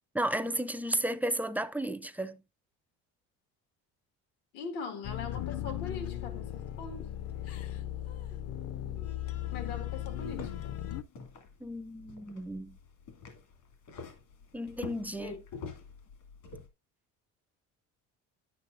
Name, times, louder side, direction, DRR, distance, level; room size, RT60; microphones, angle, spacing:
voice 1, 0.1-2.4 11.6-12.8 14.5-15.3, right 1 dB, 5° right, 0.4 m, -33 dB
voice 2, 4.5-7.1 9.5-10.8 15.2-15.4, left 5 dB, 90° left, 1.8 m, -41 dB
sound 1, 5.0-11.0, left 12 dB, 45° left, 0.5 m, -37 dB
sound 2, 9.9-16.7, left 5 dB, 70° left, 2.4 m, -48 dB
9.8 x 8.3 x 2.5 m
cardioid pair, 125°, 35 cm